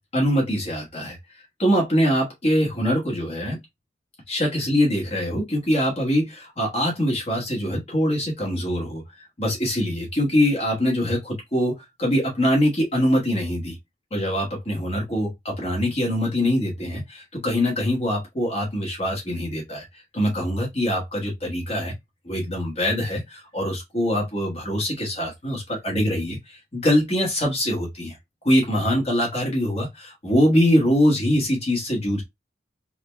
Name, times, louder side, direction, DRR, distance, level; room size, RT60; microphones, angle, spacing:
voice 1, 0.1-1.2 1.6-3.6 4.3-9.0 9.4-11.7 12.0-13.8 14.1-21.9 22.2-28.2 28.4-32.2, equal, 35° left, 1.2 m, -23 dB
3.8 x 2.1 x 3.3 m
head